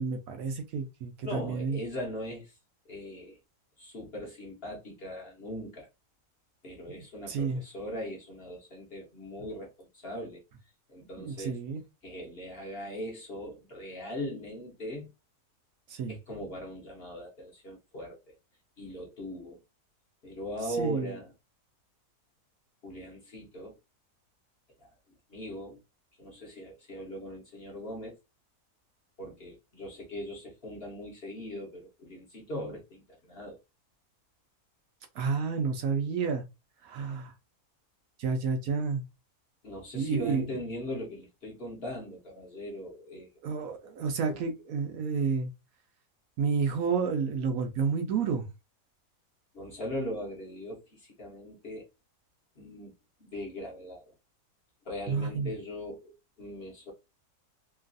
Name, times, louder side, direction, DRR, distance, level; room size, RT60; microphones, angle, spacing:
voice 1, 0.0-1.8 6.9-7.6 11.2-11.8 15.9-16.1 20.7-21.2 35.1-36.4 36.8-37.3 38.2-39.0 39.9-40.5 43.4-45.5 46.4-48.5 55.1-55.5, right 5 dB, 70° right, 1.0 m, -30 dB
voice 2, 1.2-2.6 2.8-3.4 3.8-5.9 6.6-10.4 10.9-11.6 12.0-15.1 16.1-18.4 18.8-19.6 20.2-21.3 22.8-23.8 24.8-24.9 25.3-25.8 26.2-28.2 29.2-33.6 39.6-43.3 44.3-44.4 49.5-51.9 52.6-52.9 53.2-54.1 54.8-56.9, equal, 45° left, 0.9 m, -40 dB
3.0 x 2.4 x 2.5 m
omnidirectional pair, 1.6 m